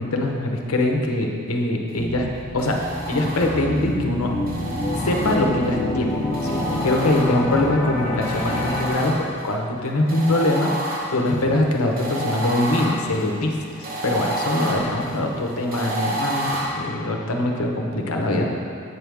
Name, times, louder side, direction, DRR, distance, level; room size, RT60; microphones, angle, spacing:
voice 1, 0.0-2.3 2.5-4.3 5.0-6.1 6.4-10.7 11.1-18.5, left 1 dB, 75° left, 1 dB, 0.9 m, -23 dB
sound 1, 2.0-8.9, left 1 dB, 20° left, 0.9 m, -27 dB
sound 2, 2.6-3.8 4.5-5.8 6.3-7.7 8.2-9.5 10.1-16.6, right 1 dB, 40° right, 1.1 m, -30 dB
8.1 x 6.3 x 3.5 m, 2.5 s
head